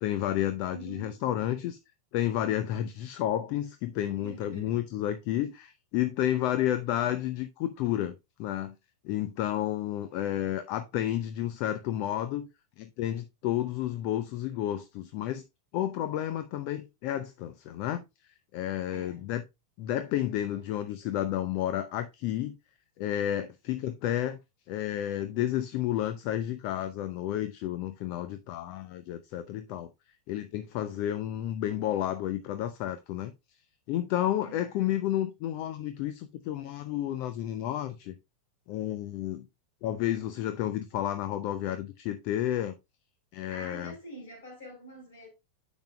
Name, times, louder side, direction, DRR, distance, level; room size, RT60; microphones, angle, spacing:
voice 1, 0.0-1.8 2.1-8.7 9.0-12.5 12.8-15.4 15.7-18.0 18.5-19.4 19.8-22.6 23.0-24.4 24.7-29.9 30.3-33.3 33.9-38.2 38.7-39.5 39.8-42.7 43.3-43.9, left 12 dB, 45° left, 0.6 m, -31 dB
voice 2, 0.7-1.2 4.2-4.8 18.9-19.3 34.4-35.0 43.5-45.3, right 1 dB, 60° left, 4.7 m, -46 dB
10.5 x 7.1 x 2.2 m
figure-of-eight pair, 90°, 0 cm